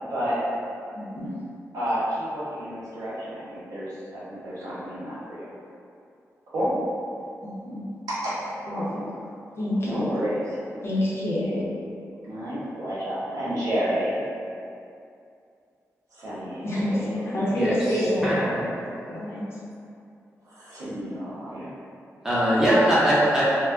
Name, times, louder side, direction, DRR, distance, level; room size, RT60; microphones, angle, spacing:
voice 1, 0.9-1.4 7.4-7.9 8.7-9.0 9.6-10.0 10.8-11.7 16.6-18.4 19.1-19.6, left 1 dB, 45° left, -7 dB, 0.7 m, -27 dB
voice 2, 1.7-5.5 6.5-6.7 8.2-8.3 8.7-9.0 9.8-10.7 12.2-14.2 16.1-17.1 20.5-21.7, equal, 85° right, -10 dB, 0.9 m, -30 dB
voice 3, 18.2-18.6 22.2-23.4, equal, 10° right, -9 dB, 0.8 m, -21 dB
2.3 x 2.0 x 3.5 m, 2.5 s
wide cardioid pair, 120°, 6 cm